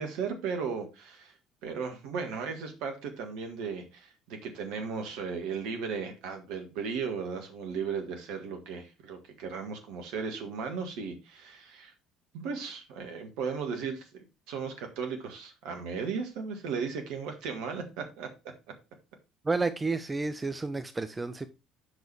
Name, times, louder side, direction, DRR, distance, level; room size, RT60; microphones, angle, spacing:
voice 1, 0.0-1.3 1.6-11.9 12.3-18.3, right 5 dB, 60° right, 1.7 m, -36 dB
voice 2, 19.4-21.5, right 3 dB, 20° right, 0.6 m, -31 dB
8.2 x 6.3 x 3.3 m
figure-of-eight pair, 55°, 0 cm